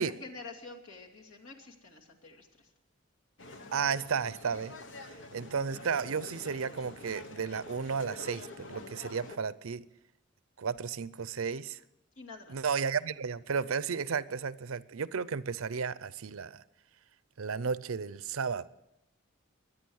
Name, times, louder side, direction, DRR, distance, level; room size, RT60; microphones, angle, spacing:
voice 1, 0.0-2.7 12.2-12.6, left 3 dB, 85° left, 2.5 m, -48 dB
sound 1, 3.4-9.4, left 2 dB, 60° left, 1.2 m, -47 dB
voice 2, 3.7-4.7 5.3-9.8 10.6-11.8 12.5-16.6 17.4-18.7, right 6 dB, 85° right, 0.6 m, -33 dB
23.0 x 9.1 x 6.3 m
head